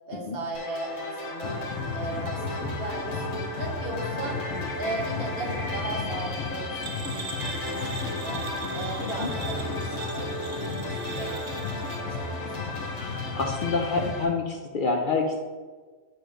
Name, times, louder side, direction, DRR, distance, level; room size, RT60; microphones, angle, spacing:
voice 1, 0.1-4.4 4.8-7.4 7.7-12.8, right 2 dB, 55° right, 0 dB, 1.2 m, -37 dB
sound 1, 0.5-14.3, left 1 dB, 35° left, 0.9 m, -36 dB
sound 2, 1.4-14.1, left 4 dB, 75° left, 0.9 m, -34 dB
sound 3, 6.8-12.0, right 7 dB, 80° right, 0.9 m, -40 dB
voice 2, 13.3-15.4, left 3 dB, 55° left, 2 dB, 0.6 m, -27 dB
6.9 x 3.1 x 5.0 m, 1.4 s
omnidirectional pair, 1.2 m